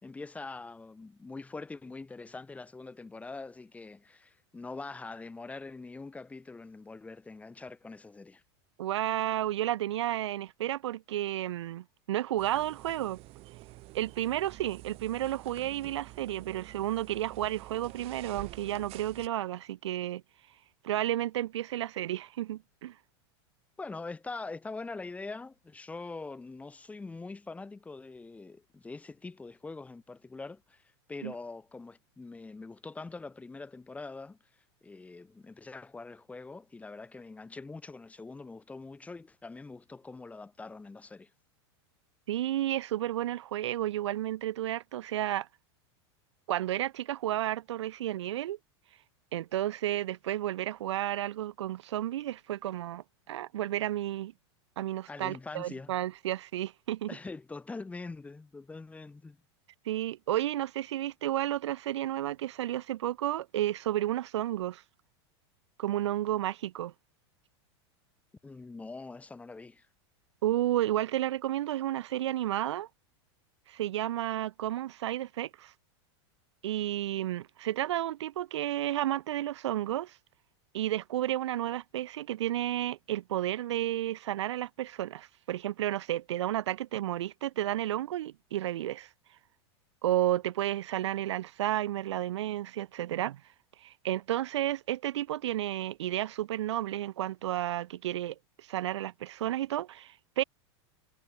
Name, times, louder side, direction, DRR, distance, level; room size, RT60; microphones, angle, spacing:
voice 1, 0.0-8.4 23.8-34.4 34.8-41.3 55.1-55.9 57.1-59.4 68.4-69.9, left 3 dB, 10° left, 4.3 m, -43 dB
voice 2, 8.8-13.2 13.9-20.2 20.8-22.9 31.2-31.3 42.3-45.5 46.5-48.6 49.3-54.3 54.8-57.1 59.9-64.8 65.8-66.9 70.4-72.9 73.7-75.7 76.6-80.1 80.7-89.1 90.0-93.4 93.8-100.4, right 13 dB, 80° right, 3.6 m, -32 dB
sound 1, 12.4-19.3, right 20 dB, 45° right, 7.6 m, -48 dB
supercardioid pair, 140°, 14 cm